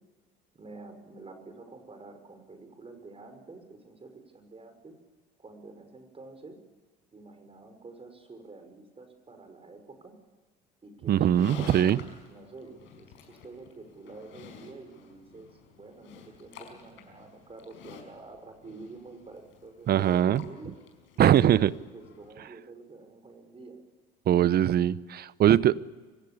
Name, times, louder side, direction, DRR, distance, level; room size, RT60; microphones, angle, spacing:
voice 1, 0.5-4.9 5.4-6.6 7.1-10.1 10.8-11.7 12.3-20.7 21.2-23.8, right 3 dB, 30° right, 5.6 m, -48 dB
Livestock farm animals working animals, 11.1-22.3, left 6 dB, 70° left, 5.2 m, -50 dB
voice 2, 11.1-12.0 19.9-20.4 21.2-21.7 24.3-25.8, right 10 dB, 50° right, 0.8 m, -22 dB
25.5 x 16.5 x 8.7 m
hypercardioid pair, 70°, 21 cm